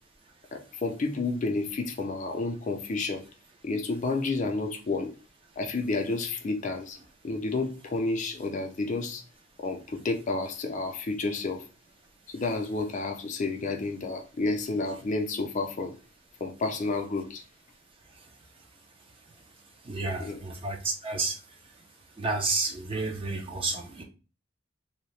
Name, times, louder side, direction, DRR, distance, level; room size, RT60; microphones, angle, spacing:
voice 1, 0.5-3.2 3.6-5.1 5.6-7.0 7.2-9.2 9.6-11.6 12.3-15.9 16.4-17.4 20.2-20.4, left 3 dB, 35° left, 0.4 m, -30 dB
voice 2, 19.8-21.4 22.2-24.0, right 3 dB, 25° right, 0.4 m, -30 dB
2.7 x 2.1 x 3.1 m
head